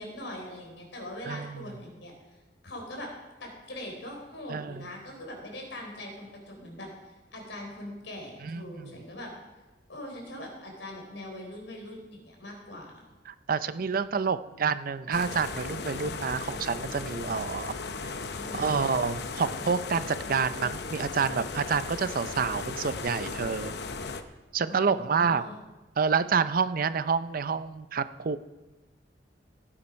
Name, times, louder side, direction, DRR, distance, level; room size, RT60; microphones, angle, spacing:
voice 1, 0.0-2.1 2.6-3.1 3.4-9.3 9.9-12.9 18.3-18.9 24.7-25.6, left 1 dB, 90° left, 1 dB, 4.0 m, -42 dB
voice 2, 1.3-1.6 4.5-4.9 8.4-8.9 13.3-17.8 18.0-18.1 18.5-23.7 24.5-25.4 26.0-28.4, right 5 dB, 50° right, 14 dB, 0.5 m, -28 dB
sound 1, 15.1-24.2, left 4 dB, 65° left, 0.8 m, -36 dB
16.5 x 8.8 x 5.3 m, 1.1 s
head